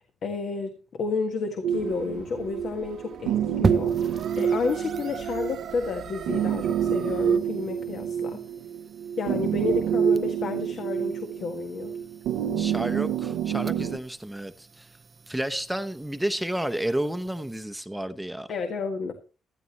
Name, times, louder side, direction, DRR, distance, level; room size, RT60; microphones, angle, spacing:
voice 1, 0.2-8.4 9.2-12.0 18.5-19.1, left 4 dB, 60° left, 1.5 m, -31 dB
sound 1, 1.6-14.0, right 8 dB, 90° right, 0.7 m, -28 dB
sound 2, 1.7-7.4, right 8 dB, 70° right, 1.1 m, -43 dB
sound 3, 3.6-17.6, right 5 dB, 35° right, 0.5 m, -38 dB
voice 2, 12.6-15.0 15.3-18.5, right 1 dB, 5° right, 0.8 m, -31 dB
15.0 x 13.0 x 3.0 m
cardioid pair, 90°, 0 cm